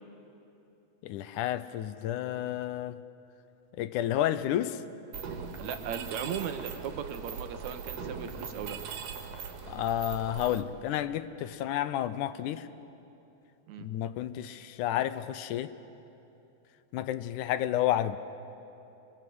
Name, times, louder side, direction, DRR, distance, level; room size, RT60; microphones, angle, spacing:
voice 1, 1.0-3.0 3.8-4.8 9.7-12.7 13.8-15.7 16.9-18.2, left 12 dB, 80° left, 13 dB, 2.1 m, -31 dB
Mechanisms, 5.1-10.6, right 6 dB, 85° right, 3.1 m, -40 dB
voice 2, 5.6-8.8 13.7-13.9, right 8 dB, 70° right, 8 dB, 2.2 m, -37 dB
26.5 x 21.0 x 7.9 m, 2.9 s
omnidirectional pair, 3.7 m